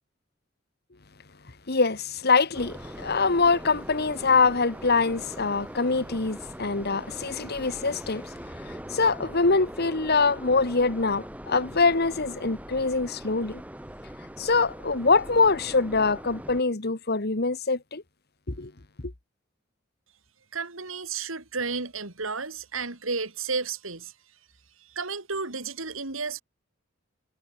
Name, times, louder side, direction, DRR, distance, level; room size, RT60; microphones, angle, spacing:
voice 1, 1.7-8.3 8.6-13.6 14.4-18.0 18.5-18.7, left 4 dB, 50° left, 1.6 m, -24 dB
sound 1, 2.5-16.6, equal, 5° right, 3.8 m, -41 dB
voice 2, 20.5-24.1 24.8-26.4, right 4 dB, 80° right, 3.5 m, -32 dB
head